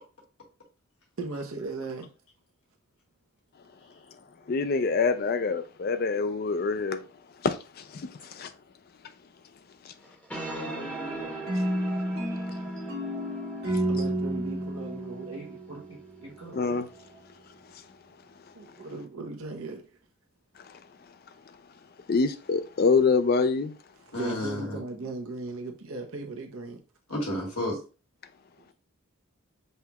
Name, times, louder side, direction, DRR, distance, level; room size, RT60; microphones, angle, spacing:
voice 1, 1.2-2.1 10.5-10.8 13.8-15.8 16.2-16.6 18.5-19.9 24.1-26.8, right 3 dB, 75° right, 0.8 m, -37 dB
voice 2, 4.5-7.0 7.4-8.5 16.5-16.9 22.1-23.7, left 4 dB, 45° left, 0.4 m, -25 dB
sound 1, 10.0-17.2, right 3 dB, 5° left, 0.8 m, -41 dB
voice 3, 10.5-11.3 15.7-15.8 16.2-16.5 24.1-24.8 27.1-27.8, left 1 dB, 80° left, 1.9 m, -34 dB
sound 2, 11.5-16.3, equal, 45° right, 1.2 m, -31 dB
5.5 x 2.3 x 2.9 m
head